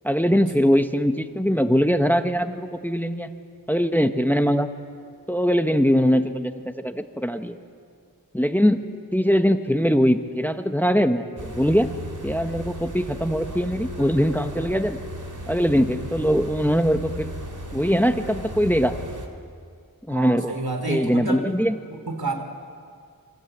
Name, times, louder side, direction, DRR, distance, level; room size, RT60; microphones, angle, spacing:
voice 1, 0.0-3.3 3.7-4.7 5.3-6.5 6.8-7.6 8.3-8.8 9.1-11.9 12.2-15.0 15.5-17.3 17.7-18.9 20.1-20.5 20.9-21.8, equal, 5° left, 7 dB, 1.2 m, -21 dB
sound 1, 11.4-19.3, equal, 55° right, 3.2 m, -36 dB
voice 2, 20.1-21.4 21.9-22.3, right 2 dB, 85° right, 5 dB, 3.5 m, -29 dB
27.5 x 24.5 x 8.1 m, 2.2 s
wide cardioid pair, 45°, 36 cm